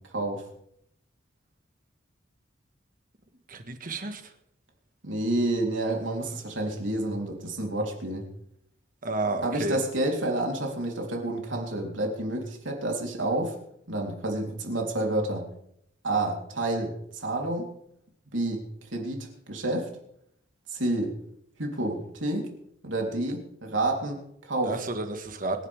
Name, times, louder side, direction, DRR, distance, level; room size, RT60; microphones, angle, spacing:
voice 1, 0.1-0.4 5.0-8.3 9.4-13.5 13.9-15.5 16.0-17.7 18.3-18.6 18.9-19.9 20.7-21.1 21.6-22.5 22.8-24.7, right 2 dB, 85° right, 1 dB, 3.8 m, -29 dB
voice 2, 3.5-4.3 9.0-9.8 24.6-25.7, right 2 dB, 45° right, 6 dB, 1.8 m, -31 dB
26.0 x 11.0 x 3.7 m, 0.73 s
head